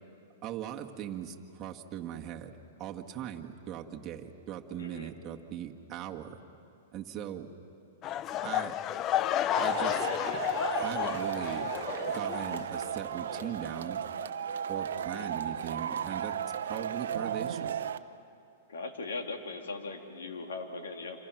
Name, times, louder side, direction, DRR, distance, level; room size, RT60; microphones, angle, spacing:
voice 1, 0.4-2.5 2.8-6.4 6.9-7.5 8.4-8.8 9.6-10.1 10.7-11.7 12.0-14.0 14.7-16.3 16.6-17.7, right 10 dB, 30° right, 1 dB, 1.7 m, -40 dB
voice 2, 4.8-5.1 14.9-15.3 18.7-21.2, left 3 dB, 85° left, 4 dB, 2.8 m, -39 dB
sound 1, 8.0-13.0 13.3-13.7 14.2-14.3, left 12 dB, 30° left, 0.5 m, -32 dB
Male speech man speaking / Shout / Clapping, 9.5-18.0, right 8 dB, 80° right, 0.8 m, -35 dB
27.5 x 26.5 x 6.1 m, 2.6 s
hypercardioid pair, 130°, 0 cm